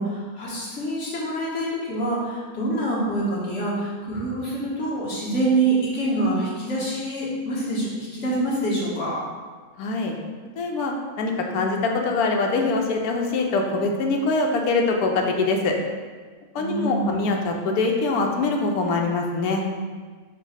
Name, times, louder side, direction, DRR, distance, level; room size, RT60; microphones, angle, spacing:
voice 1, 0.0-9.2 16.6-17.2, right 2 dB, 55° left, -6 dB, 1.4 m, -26 dB
voice 2, 9.8-10.1 10.6-15.7 16.5-19.6, left 3 dB, 80° left, 2 dB, 1.1 m, -23 dB
4.6 x 2.2 x 4.8 m, 1.5 s
omnidirectional pair, 1.6 m